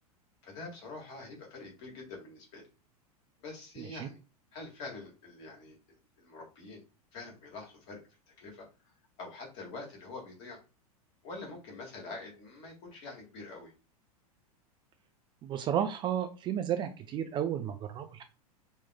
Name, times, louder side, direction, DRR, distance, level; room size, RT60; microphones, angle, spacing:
voice 1, 0.4-2.7 3.4-4.2 4.5-6.8 7.1-10.6 11.2-13.7, left 3 dB, 45° left, 0 dB, 1.9 m, -46 dB
voice 2, 3.8-4.1 15.4-18.2, right 9 dB, 25° right, 9 dB, 0.4 m, -33 dB
5.5 x 3.0 x 2.2 m, 0.33 s
figure-of-eight pair, 90°, 19 cm